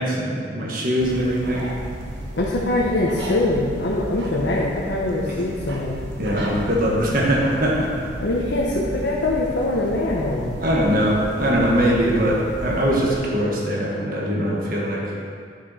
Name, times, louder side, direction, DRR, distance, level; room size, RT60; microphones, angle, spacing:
voice 1, 0.0-1.7 5.3-5.4 6.2-8.1 10.6-15.0, equal, 55° right, -3 dB, 1.5 m, -21 dB
sound 1, 1.0-13.1, right 1 dB, 85° right, 1.2 m, -33 dB
voice 2, 2.3-6.0 8.2-10.5, left 2 dB, 85° left, -4 dB, 1.0 m, -23 dB
9.9 x 6.3 x 4.3 m, 2.2 s
head